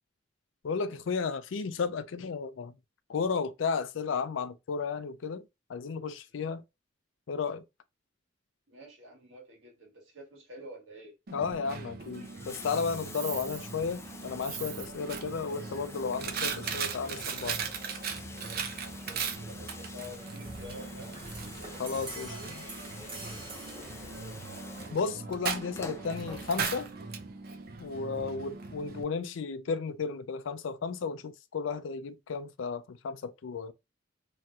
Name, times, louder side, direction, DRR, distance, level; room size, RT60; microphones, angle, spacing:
voice 1, 0.6-2.7 3.1-5.4 5.7-6.6 7.3-7.6 11.3-17.6 21.8-22.7 24.9-26.9 27.8-33.7, left 5 dB, 80° left, 0.4 m, -33 dB
voice 2, 8.7-11.1 18.4-21.8 23.5-24.6 28.2-28.4, equal, 85° right, 1.6 m, -49 dB
Coin (dropping), 11.3-29.0, right 5 dB, 55° right, 0.5 m, -39 dB
Bathtub (filling or washing), 12.0-26.9 28.0-28.1, left 3 dB, 15° left, 0.3 m, -48 dB
sound 1, 20.2-25.1, right 2 dB, 25° right, 1.0 m, -46 dB
3.0 x 2.8 x 2.3 m
head